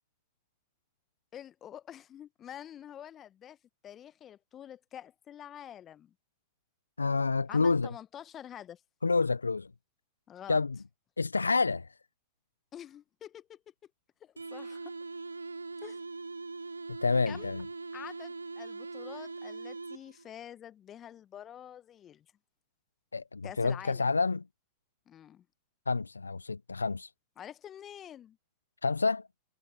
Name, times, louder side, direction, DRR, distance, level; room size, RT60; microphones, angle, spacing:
voice 1, 1.3-3.6 3.8-6.1 7.5-8.8 10.3-10.6 12.7-13.6 14.2-15.0 15.8-16.0 17.3-17.5 17.9-22.2 23.4-24.1 25.1-25.4 27.4-28.4, left 10 dB, 30° left, 1.3 m, -47 dB
voice 2, 7.0-7.9 9.0-9.7 10.5-10.8 11.2-12.0 16.9-17.7 23.1-24.4 25.9-27.1 28.8-29.3, left 4 dB, 85° left, 0.6 m, -28 dB
sound 1, 14.4-20.3, right 3 dB, 85° right, 0.6 m, -41 dB
figure-of-eight pair, 95°, 0 cm